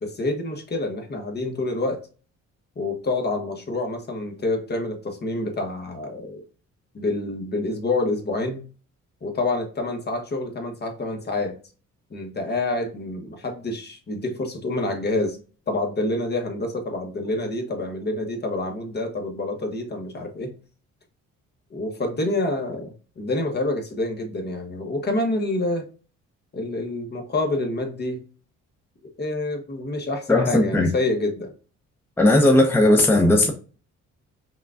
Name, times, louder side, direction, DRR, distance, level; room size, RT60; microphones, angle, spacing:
voice 1, 0.0-2.0 2.8-6.4 6.9-8.7 9.2-11.6 12.1-15.4 15.7-20.5 21.7-25.9 26.5-28.2 29.2-31.5, left 2 dB, 35° left, 0.9 m, -27 dB
voice 2, 30.3-30.9 32.2-33.5, left 1 dB, 5° left, 0.7 m, -17 dB
5.8 x 2.3 x 2.4 m
cardioid pair, 90°, 30 cm